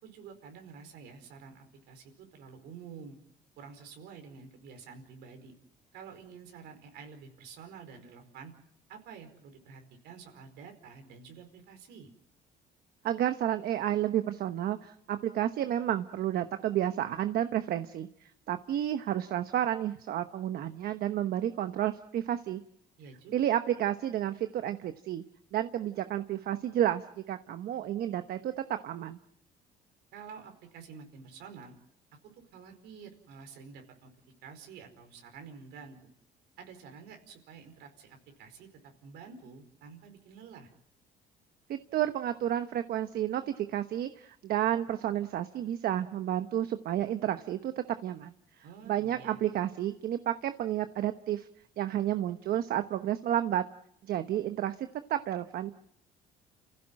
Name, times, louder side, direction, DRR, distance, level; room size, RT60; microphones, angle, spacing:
voice 1, 0.0-3.2 3.6-5.5 5.9-8.5 8.9-12.1 23.0-23.4 30.1-31.7 32.4-34.1 34.4-36.0 36.6-40.7 48.6-49.4, right 6 dB, 85° right, 5 dB, 4.8 m, -49 dB
voice 2, 13.0-22.6 23.3-25.2 25.5-29.2 41.7-47.7 48.0-48.3 48.9-51.5 51.8-53.6 54.0-55.7, right 11 dB, 65° right, 9 dB, 1.1 m, -31 dB
30.0 x 16.0 x 7.6 m, 0.74 s
cardioid pair, 110°, 17 cm